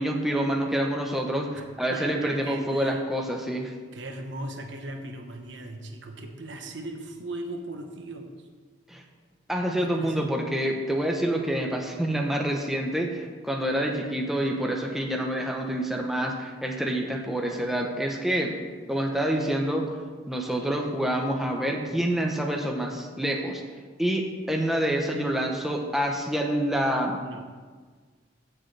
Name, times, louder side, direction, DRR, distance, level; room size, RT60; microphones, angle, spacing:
voice 1, 0.0-3.7 8.9-9.0 9.5-18.6 18.9-19.9 20.3-23.6 24.0-27.4, right 1 dB, ahead, 1 dB, 0.8 m, -27 dB
voice 2, 1.9-3.0 3.9-8.3 9.8-10.3 27.2-27.4, right 1 dB, 75° right, 4 dB, 1.1 m, -38 dB
15.5 x 6.6 x 3.3 m, 1.5 s
head